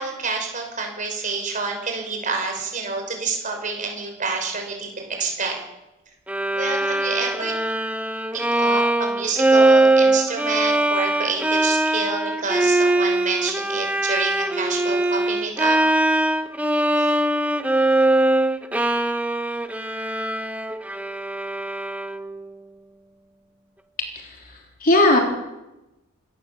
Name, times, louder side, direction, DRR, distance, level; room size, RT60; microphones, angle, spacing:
voice 1, 0.0-5.6 6.5-7.5 8.3-15.8 17.0-17.1, right 4 dB, 40° right, 3 dB, 6.0 m, -28 dB
Bowed string instrument, 6.3-22.4, right 2 dB, 5° right, 1.0 m, -21 dB
voice 2, 24.2-25.2, left 2 dB, 45° left, 1 dB, 3.5 m, -19 dB
27.5 x 14.0 x 7.3 m, 1.0 s
head